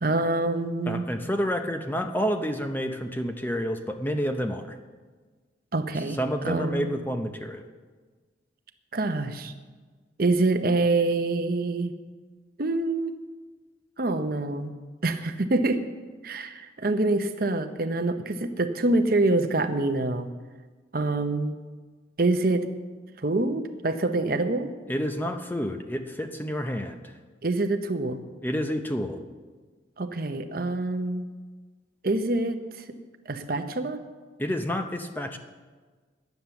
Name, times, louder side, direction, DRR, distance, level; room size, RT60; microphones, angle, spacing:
voice 1, 0.0-1.0 5.7-7.0 8.9-9.5 10.2-11.9 12.6-13.1 14.0-14.7 15.0-15.8 16.2-20.3 20.9-21.6 22.2-22.7 23.2-24.7 27.4-28.2 30.0-31.3 32.0-32.8 33.3-34.0, right 2 dB, 50° right, 8 dB, 0.8 m, -26 dB
voice 2, 0.9-4.7 6.2-7.6 24.9-27.0 28.4-29.2 34.4-35.4, equal, 10° left, 6 dB, 0.7 m, -29 dB
12.0 x 9.4 x 7.0 m, 1.4 s
head